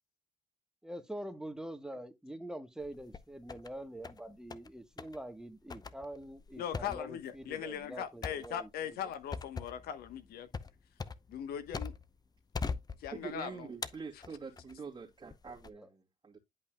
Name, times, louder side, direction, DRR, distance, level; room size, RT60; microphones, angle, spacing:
voice 1, 0.8-9.1 15.7-15.9, right 1 dB, 5° right, 1.2 m, -45 dB
sound 1, 2.8-3.7 4.0-4.7 5.0-5.2 5.7-12.2 12.5-13.4 13.8-14.8 15.3-15.7, left 4 dB, 25° left, 0.7 m, -42 dB
voice 2, 6.6-10.5 11.3-11.9 13.0-13.7, left 9 dB, 80° left, 1.2 m, -39 dB
voice 3, 13.2-16.4, right 5 dB, 30° right, 2.2 m, -45 dB
10.5 x 5.5 x 2.3 m
cardioid pair, 80°, 16 cm